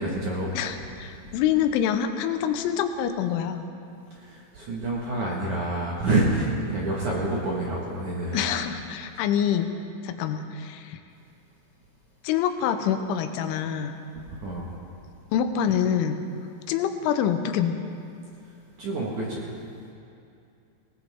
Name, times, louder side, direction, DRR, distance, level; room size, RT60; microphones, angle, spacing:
voice 1, 0.0-0.6 4.2-8.5 14.4-14.8 18.8-19.5, right 2 dB, 55° right, -4 dB, 2.3 m, -27 dB
voice 2, 0.5-3.6 8.3-9.7 10.0-11.0 12.2-13.9 15.3-16.2 16.7-17.8, left 9 dB, 85° left, 8 dB, 3.2 m, -26 dB
20.5 x 18.5 x 3.6 m, 2.6 s
omnidirectional pair, 5.5 m